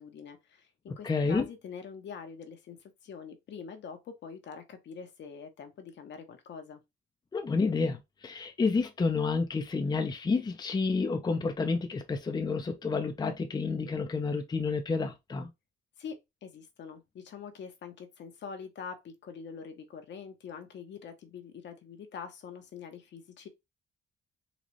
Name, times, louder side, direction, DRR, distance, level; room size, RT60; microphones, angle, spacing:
voice 1, 0.0-6.8 16.0-23.5, left 6 dB, 65° left, 0.9 m, -44 dB
voice 2, 1.0-1.5 7.3-15.5, left 4 dB, 20° left, 0.5 m, -30 dB
4.0 x 2.4 x 3.1 m
cardioid pair, 95°, 20 cm